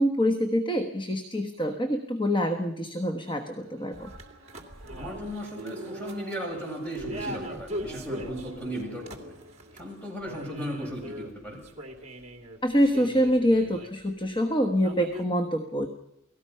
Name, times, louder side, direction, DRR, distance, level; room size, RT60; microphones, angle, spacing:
voice 1, 0.0-4.1 12.6-15.9, equal, 25° left, 6 dB, 1.2 m, -25 dB
sound 1, 3.6-10.0, right 2 dB, 60° right, 2.7 m, -44 dB
sound 2, 3.9-14.4 14.7-15.2, equal, 30° right, 2.6 m, -42 dB
voice 2, 5.0-9.3 9.7-11.6, equal, 5° left, -1 dB, 7.7 m, -36 dB
29.0 x 18.5 x 5.7 m, 0.84 s
head